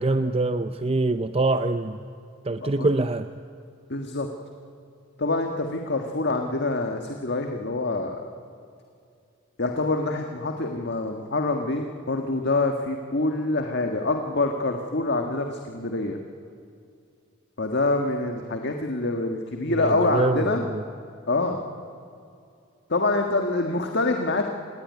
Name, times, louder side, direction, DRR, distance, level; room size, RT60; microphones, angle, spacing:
voice 1, 0.0-2.0 2.4-3.3 19.7-20.8, right 2 dB, 30° right, 0.6 m, -24 dB
voice 2, 3.9-4.3 5.2-8.2 9.6-16.2 17.6-20.6 21.3-21.6 22.9-24.5, left 2 dB, 55° left, 1.6 m, -26 dB
27.5 x 20.5 x 9.5 m
head